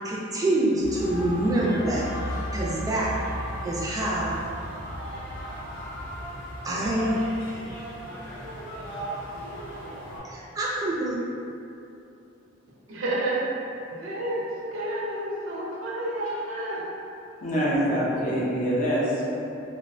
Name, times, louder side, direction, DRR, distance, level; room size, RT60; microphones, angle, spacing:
voice 1, 0.0-2.1 2.5-3.2 3.6-4.3 6.6-7.3 10.2-11.2, right 1 dB, 20° right, -5 dB, 0.4 m, -26 dB
sound 1, 0.8-10.2, equal, 90° left, 0.7 m, -35 dB
voice 2, 12.9-13.4 14.0-14.5 14.7-16.8, right 1 dB, 75° right, -4 dB, 0.5 m, -30 dB
voice 3, 17.4-19.3, equal, 40° left, -6 dB, 0.5 m, -25 dB
2.3 x 2.1 x 2.5 m, 2.7 s
head